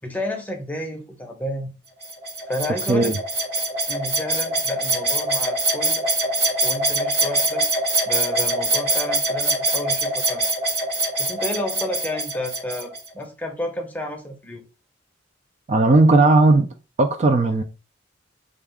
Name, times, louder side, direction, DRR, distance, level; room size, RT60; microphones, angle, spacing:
voice 1, 0.0-1.7 2.5-3.1 3.9-6.0 6.6-7.7 8.1-10.4 11.2-14.6, left 1 dB, 10° left, 0.6 m, -31 dB
sound 1, 2.0-13.1, right 2 dB, 60° right, 1.8 m, -23 dB
voice 2, 15.7-16.7 17.0-17.6, right 2 dB, 35° right, 0.4 m, -16 dB
3.8 x 2.4 x 3.4 m
head